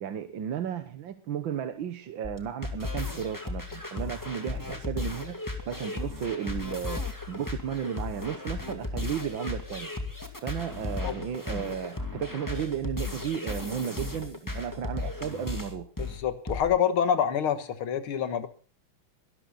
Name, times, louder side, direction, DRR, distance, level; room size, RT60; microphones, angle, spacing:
voice 1, 0.0-5.4 5.7-7.0 7.3-9.9 10.4-15.9, right 9 dB, 65° right, 1.8 m, -34 dB
sound 1, 2.2-16.6, left 2 dB, 10° left, 2.1 m, -35 dB
voice 2, 16.0-18.5, left 8 dB, 75° left, 2.3 m, -27 dB
22.0 x 13.0 x 4.0 m
omnidirectional pair, 2.3 m